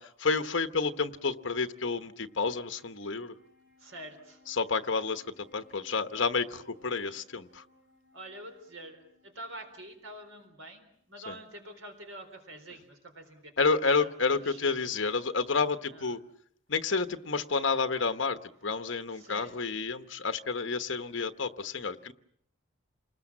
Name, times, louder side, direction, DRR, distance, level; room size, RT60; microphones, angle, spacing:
voice 1, 0.0-3.3 4.5-7.6 11.3-11.4 13.6-16.2 16.7-22.1, left 4 dB, 60° left, 9 dB, 1.1 m, -30 dB
Wind instrument woodwind instrument, 1.8-11.3, equal, 55° right, 4.8 m, -64 dB
voice 2, 3.8-4.4 8.1-14.7 15.9-16.1 19.1-19.6, right 1 dB, 70° right, 5 dB, 4.2 m, -47 dB
28.5 x 20.5 x 7.4 m, 0.69 s
head